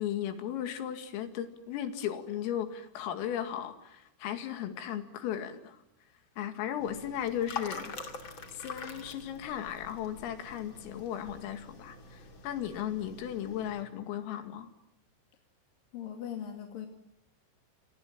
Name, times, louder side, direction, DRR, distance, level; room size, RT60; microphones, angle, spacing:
voice 1, 0.0-5.8 6.4-8.0 8.2-14.7, left 10 dB, 85° left, 8 dB, 4.9 m, -36 dB
sound 1, 6.8-13.8, left 4 dB, 35° left, 2.3 m, -45 dB
voice 2, 15.9-16.9, left 9 dB, 50° left, 4 dB, 3.3 m, -39 dB
29.5 x 25.5 x 7.5 m, 0.77 s
omnidirectional pair, 5.8 m